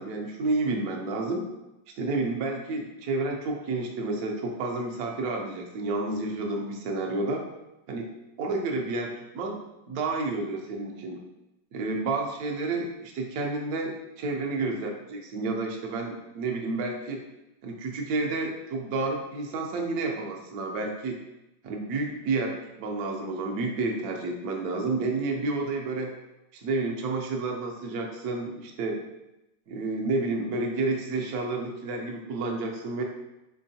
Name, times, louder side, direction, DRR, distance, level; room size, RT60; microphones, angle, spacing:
voice 1, 0.0-1.4 2.0-7.4 7.9-8.1 8.4-11.2 11.7-17.2 17.6-21.2 21.6-26.1 26.5-29.0 29.7-33.0, right 3 dB, 65° right, 1 dB, 1.0 m, -30 dB
4.5 x 4.2 x 2.7 m, 0.93 s
omnidirectional pair, 2.2 m